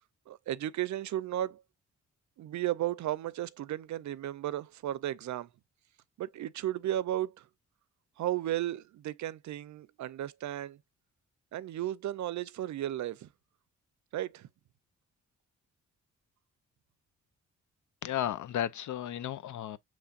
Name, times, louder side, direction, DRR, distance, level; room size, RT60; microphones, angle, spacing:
voice 1, 0.3-1.6 2.4-5.5 6.2-7.4 8.2-10.8 11.5-13.3 14.1-14.5, right 13 dB, 65° right, 0.5 m, -34 dB
voice 2, 18.0-19.8, left 11 dB, 70° left, 0.6 m, -34 dB
6.9 x 3.2 x 2.4 m
cardioid pair, 105°, 30 cm